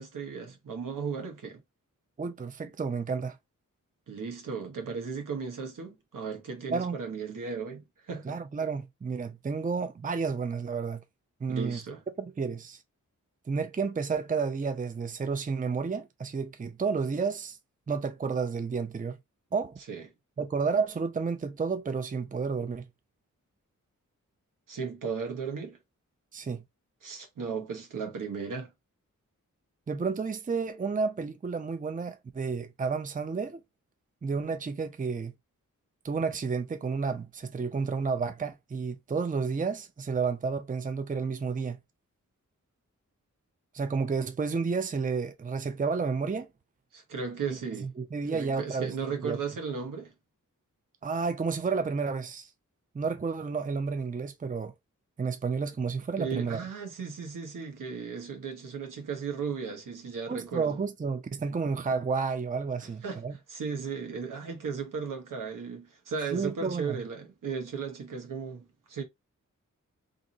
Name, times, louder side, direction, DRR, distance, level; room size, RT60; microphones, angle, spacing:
voice 1, 0.0-1.6 4.1-8.4 11.5-12.0 19.9-20.0 24.7-25.8 27.0-28.7 46.9-47.9 48.2-50.1 56.2-60.8 63.0-69.0, right 5 dB, 80° right, 1.1 m, -36 dB
voice 2, 2.2-3.4 6.7-7.0 8.2-11.0 11.4-11.8 12.2-12.8 13.5-17.6 17.9-19.2 19.5-19.8 20.4-22.8 26.3-26.6 29.9-33.6 34.2-35.3 36.0-41.8 43.7-46.5 47.5-47.6 48.0-48.9 49.2-49.4 51.0-52.5 52.9-54.7 55.2-56.6 60.3-63.3 66.3-67.0, right 5 dB, 25° right, 0.5 m, -31 dB
2.6 x 2.6 x 4.0 m
cardioid pair, 50°, 32 cm